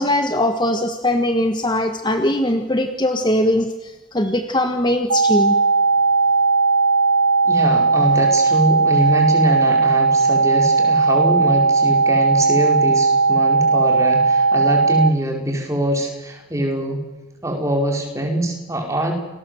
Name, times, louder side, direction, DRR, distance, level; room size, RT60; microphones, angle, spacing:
voice 1, 0.0-5.6, left 1 dB, 20° left, 6 dB, 1.5 m, -20 dB
sound 1, 5.1-15.1, right 4 dB, 80° right, 1.2 m, -17 dB
voice 2, 7.4-17.0 17.4-19.1, right 1 dB, 15° right, 2 dB, 5.0 m, -23 dB
29.5 x 20.0 x 7.9 m, 1.1 s
head